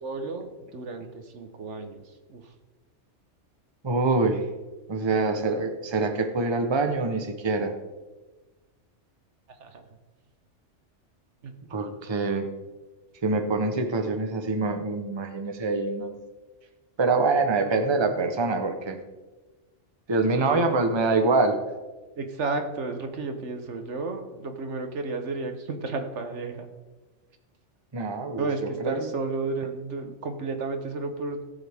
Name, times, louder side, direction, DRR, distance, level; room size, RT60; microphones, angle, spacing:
voice 1, 0.0-2.0 2.3-2.4 9.6-9.8 11.4-11.5 20.3-20.9 22.2-26.7 28.4-31.5, right 3 dB, 70° right, 6 dB, 1.4 m, -32 dB
voice 2, 3.8-4.4 4.9-7.7 11.7-12.5 13.2-16.2 17.0-19.0 20.1-21.6 27.9-29.1, right 3 dB, 25° right, 6 dB, 0.9 m, -25 dB
17.0 x 7.3 x 3.5 m, 1.2 s
omnidirectional pair, 1.2 m